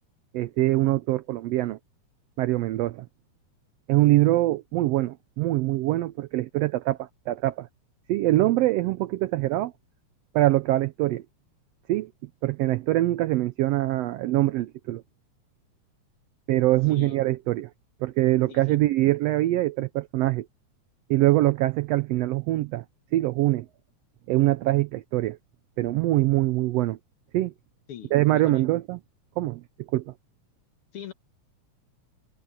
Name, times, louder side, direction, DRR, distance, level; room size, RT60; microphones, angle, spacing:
voice 1, 0.3-1.8 2.4-3.1 3.9-7.7 8.1-9.7 10.3-11.2 11.9-12.1 12.4-15.0 16.5-17.7 18.0-20.5 21.1-22.8 23.1-23.7 24.3-25.4 25.8-27.0 27.3-27.5 28.1-29.0 29.4-29.6 29.9-30.1, right 16 dB, 85° right, 1.4 m, -23 dB
voice 2, 18.5-18.8 27.9-28.7 30.9-31.1, left 9 dB, 60° left, 1.7 m, -41 dB
omnidirectional pair, 3.4 m